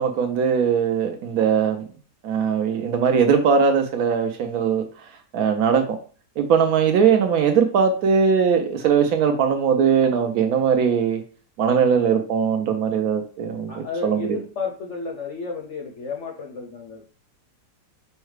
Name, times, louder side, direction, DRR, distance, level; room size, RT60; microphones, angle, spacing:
voice 1, 0.0-1.8 2.2-4.9 5.3-6.0 6.4-11.2 11.6-14.4, right 6 dB, 70° right, 6 dB, 0.9 m, -20 dB
voice 2, 13.7-17.0, left 4 dB, 65° left, 1 dB, 0.7 m, -32 dB
5.5 x 2.2 x 3.1 m, 0.41 s
omnidirectional pair, 1.8 m